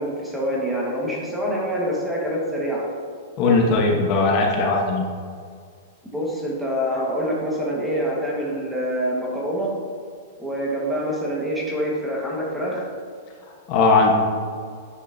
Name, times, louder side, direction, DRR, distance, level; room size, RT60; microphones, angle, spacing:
voice 1, 0.0-2.9 6.1-9.8 10.4-12.9, equal, 5° right, -4 dB, 1.5 m, -26 dB
voice 2, 3.4-5.0 13.7-14.1, left 3 dB, 35° left, -1 dB, 1.1 m, -18 dB
9.8 x 8.3 x 2.7 m, 2.1 s
supercardioid pair, 160°, 0 cm